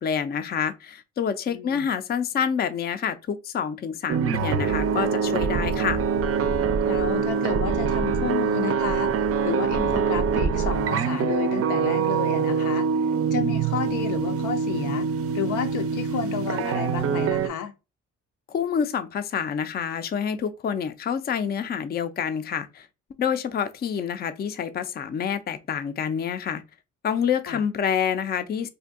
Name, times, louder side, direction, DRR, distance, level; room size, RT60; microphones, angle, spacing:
voice 1, 0.0-6.0 18.5-22.9 23.2-26.6 27.0-28.7, left 7 dB, 35° left, 0.4 m, -27 dB
voice 2, 1.5-1.9 6.8-12.9 13.3-15.1 15.3-17.7 27.5-27.6, left 8 dB, 85° left, 0.6 m, -31 dB
sound 1, 4.1-17.5, right 6 dB, 50° right, 0.5 m, -24 dB
2.6 x 2.2 x 3.4 m
cardioid pair, 90°, 30 cm